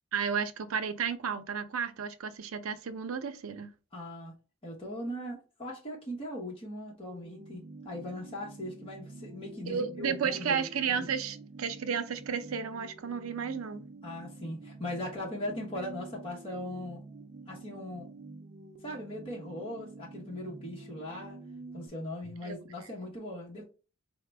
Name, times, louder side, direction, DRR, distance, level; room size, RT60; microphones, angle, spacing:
voice 1, 0.1-3.7 9.7-13.8 22.2-22.7, right 6 dB, 85° right, 0.5 m, -33 dB
voice 2, 3.9-4.3 4.6-11.1 14.0-17.0 17.5-18.1 18.8-21.4 21.7-23.6, left 1 dB, 25° left, 1.0 m, -39 dB
sound 1, 7.0-21.9, right 3 dB, 35° right, 0.4 m, -48 dB
4.7 x 2.1 x 3.3 m
head